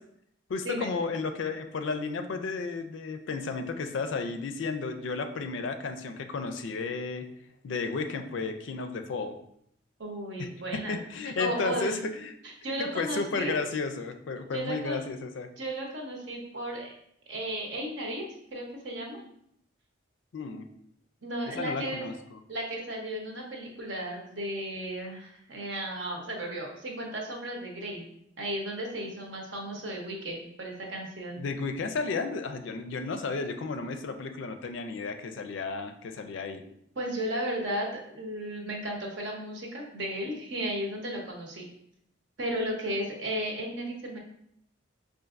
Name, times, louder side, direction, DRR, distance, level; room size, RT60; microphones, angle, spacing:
voice 1, 0.5-7.3 7.6-9.3 10.4-10.5 10.9-12.3 12.8-15.5 20.3-20.7 21.6-22.4 31.4-36.6, left 4 dB, 70° left, 7 dB, 0.4 m, -33 dB
voice 2, 10.0-11.0 11.4-12.0 12.4-13.5 14.5-15.1 15.6-16.9 17.3-18.2 18.5-19.2 21.2-22.1 22.5-28.1 28.4-31.4 37.0-41.7 42.4-44.2, right 1 dB, 65° right, 0 dB, 0.8 m, -34 dB
5.1 x 2.5 x 2.5 m, 0.72 s
head